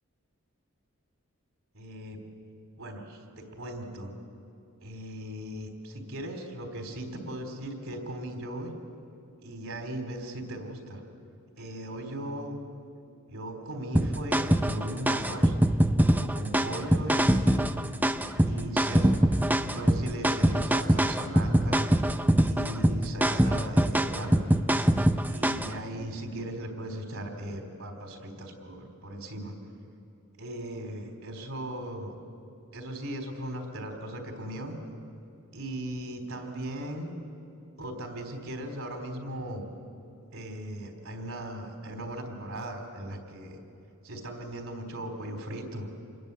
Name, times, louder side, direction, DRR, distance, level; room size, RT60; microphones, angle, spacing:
voice 1, 1.7-2.2 2.8-4.1 4.8-8.7 9.4-11.0 11.6-12.6 13.3-15.5 16.1-17.6 18.5-19.2 19.6-21.9 22.4-24.6 25.3-29.5 30.4-32.1 32.7-34.8 35.5-37.1 37.8-39.7 40.3-43.6 44.0-45.9, right 1 dB, 70° right, 4 dB, 3.9 m, -38 dB
sound 1, 14.0-25.8, right 1 dB, 10° right, 0.7 m, -24 dB
27.5 x 21.5 x 8.4 m, 2.7 s
head